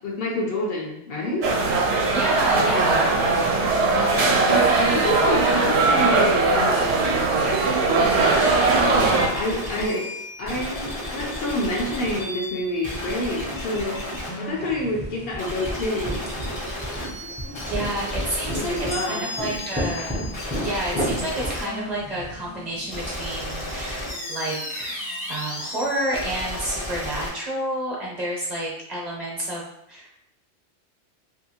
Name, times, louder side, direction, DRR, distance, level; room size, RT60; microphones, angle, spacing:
voice 1, 0.0-1.4 4.4-7.1 8.8-10.1 10.4-14.0 14.4-16.2 17.4-17.6 18.5-19.2, left 1 dB, 65° left, -2 dB, 0.8 m, -28 dB
sound 1, 1.4-9.3, right 3 dB, 75° right, 0.8 m, -20 dB
voice 2, 2.1-3.1 17.6-20.2 20.5-25.0 25.3-30.1, right 1 dB, 45° right, -4 dB, 0.8 m, -29 dB
sound 2, 8.0-27.3, left 1 dB, 30° left, 0.6 m, -33 dB
sound 3, 14.5-22.7, equal, 15° right, 0.4 m, -33 dB
2.7 x 2.6 x 2.8 m, 0.77 s
omnidirectional pair, 1.1 m